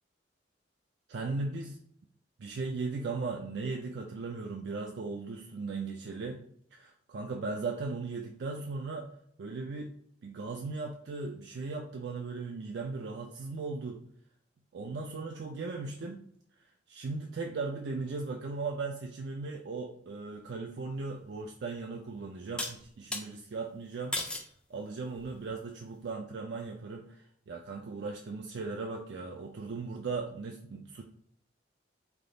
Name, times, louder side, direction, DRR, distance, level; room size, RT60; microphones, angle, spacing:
voice 1, 1.1-1.8 2.4-6.4 6.7-9.1 9.4-9.9 10.2-14.0 14.7-16.2 16.9-24.2 24.7-31.0, right 3 dB, 65° right, 1 dB, 0.4 m, -37 dB
sound 1, 21.2-21.3 22.6-23.3 24.1-24.5 25.2-25.6, left 1 dB, 5° left, 0.4 m, -36 dB
3.5 x 2.3 x 3.8 m, 0.66 s
head